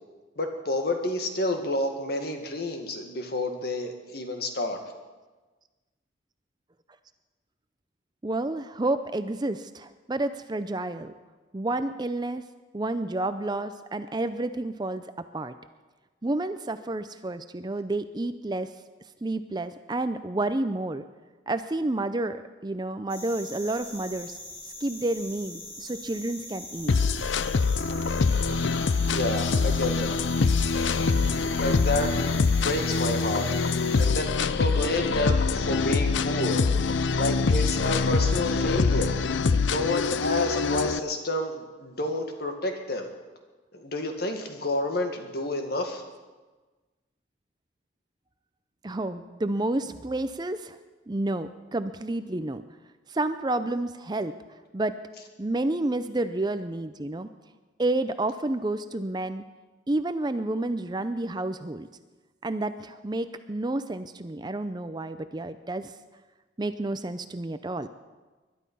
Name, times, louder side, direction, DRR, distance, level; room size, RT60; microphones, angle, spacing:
voice 1, 0.4-4.8 29.1-30.2 31.6-32.2 32.5-33.5 34.0-36.6 37.2-39.1 39.7-43.1 43.7-46.0, left 1 dB, 55° left, 4 dB, 1.9 m, -29 dB
voice 2, 8.2-11.1 11.5-12.4 12.7-15.0 15.3-15.5 16.2-18.7 19.2-21.0 21.5-24.4 24.8-26.9 48.8-50.8 51.1-52.6 53.1-54.3 54.7-54.9 55.4-57.3 57.8-59.4 59.9-61.9 62.4-65.9 66.6-67.9, right 2 dB, 20° right, 11 dB, 0.5 m, -30 dB
sound 1, 23.1-34.1, left 1 dB, 30° left, 3.4 m, -42 dB
sound 2, 26.9-41.0, left 4 dB, 75° left, 0.5 m, -24 dB
21.0 x 11.5 x 5.5 m, 1.3 s
head